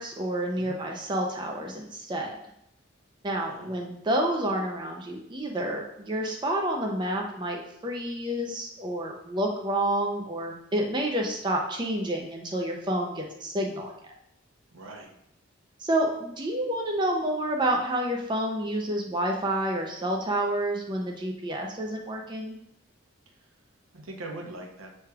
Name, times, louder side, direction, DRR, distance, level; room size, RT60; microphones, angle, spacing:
voice 1, 0.0-2.4 3.2-13.9 15.8-22.6, right 1 dB, 20° right, 1 dB, 0.4 m, -29 dB
voice 2, 3.4-3.8 14.7-15.1 23.3-23.4 23.9-24.9, right 2 dB, 90° right, 1 dB, 0.7 m, -41 dB
6.9 x 3.2 x 2.3 m, 0.78 s
head